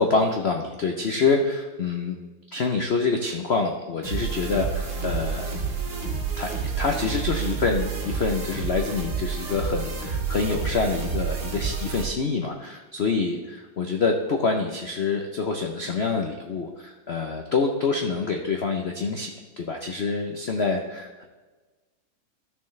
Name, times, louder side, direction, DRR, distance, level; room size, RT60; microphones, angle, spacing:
voice 1, 0.0-2.2 2.5-5.5 6.4-6.5 6.8-21.2, left 4 dB, 80° left, 3 dB, 0.5 m, -26 dB
sound 1, 4.0-12.0, right 5 dB, 65° right, 2.3 m, -29 dB
14.0 x 6.7 x 3.2 m, 1.2 s
omnidirectional pair, 2.2 m